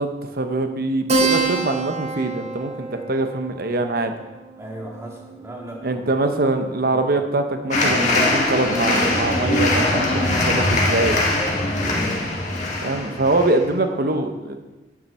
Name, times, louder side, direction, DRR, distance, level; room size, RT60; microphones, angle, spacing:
voice 1, 0.0-4.1 5.8-11.2 12.8-14.6, right 2 dB, 55° right, 6 dB, 0.9 m, -23 dB
Keyboard (musical), 1.1-6.1, right 3 dB, 35° right, 1.3 m, -27 dB
voice 2, 4.6-6.1 11.8-12.1, right 1 dB, 15° right, -2 dB, 1.9 m, -36 dB
sound 1, 7.7-13.6, left 2 dB, 40° left, 1.9 m, -21 dB
10.0 x 8.8 x 4.4 m, 1.1 s
head